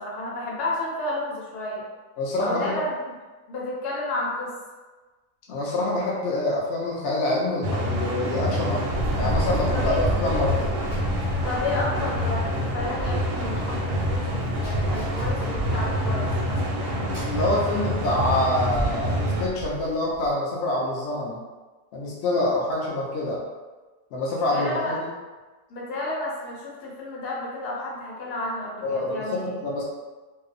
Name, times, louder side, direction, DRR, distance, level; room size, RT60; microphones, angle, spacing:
voice 1, 0.0-1.8 2.4-2.9 3.5-4.5 9.7-9.9 11.4-16.6 24.5-25.0 25.7-29.4, left 2 dB, 85° left, -4 dB, 1.2 m, -31 dB
voice 2, 2.2-2.8 5.5-10.7 17.2-21.4 21.9-23.4 24.1-25.1 28.8-29.8, left 1 dB, 60° left, -5 dB, 0.7 m, -26 dB
sound 1, 7.6-19.4, equal, 70° right, 0.8 m, -27 dB
Run, 8.9-20.3, right 2 dB, 5° right, 0.7 m, -34 dB
2.6 x 2.1 x 2.4 m, 1.3 s
omnidirectional pair, 1.7 m